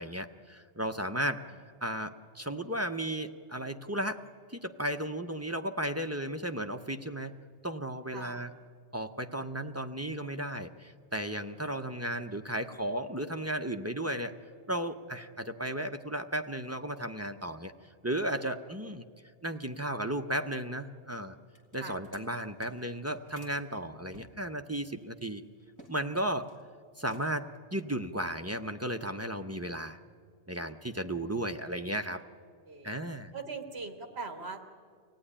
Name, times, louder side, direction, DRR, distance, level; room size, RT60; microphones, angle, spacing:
voice 1, 0.0-1.4 1.8-4.2 4.5-7.4 7.6-8.5 8.9-14.3 14.7-17.7 18.0-19.0 19.4-21.3 21.7-25.4 25.9-26.5 27.0-30.0 30.5-32.2 32.8-33.3, right 1 dB, 20° right, 5 dB, 0.5 m, -34 dB
voice 2, 8.1-8.5 21.8-22.0 30.9-31.1 32.7-32.9 33.3-34.6, right 4 dB, 60° right, 6 dB, 1.8 m, -41 dB
sound 1, 21.5-23.6 24.1-26.0 26.2-26.6 26.9-27.5, equal, 15° left, 2.2 m, -56 dB
24.0 x 17.0 x 10.0 m, 2.1 s
omnidirectional pair, 1.2 m